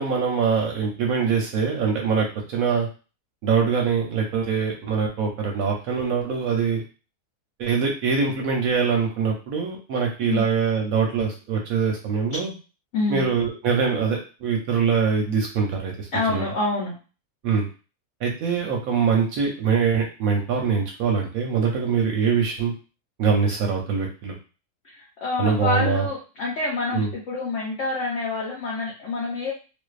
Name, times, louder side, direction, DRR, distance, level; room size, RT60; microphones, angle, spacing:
voice 1, 0.0-2.9 3.4-6.8 7.6-12.5 13.1-16.5 17.4-17.7 18.2-22.7 23.2-24.4 25.4-26.1 26.9-27.1, right 6 dB, 70° right, 0 dB, 0.9 m, -23 dB
voice 2, 12.9-13.3 16.1-17.0 24.8-29.5, left 3 dB, 60° left, -4 dB, 0.9 m, -27 dB
2.5 x 2.2 x 2.3 m, 0.34 s
omnidirectional pair, 1.7 m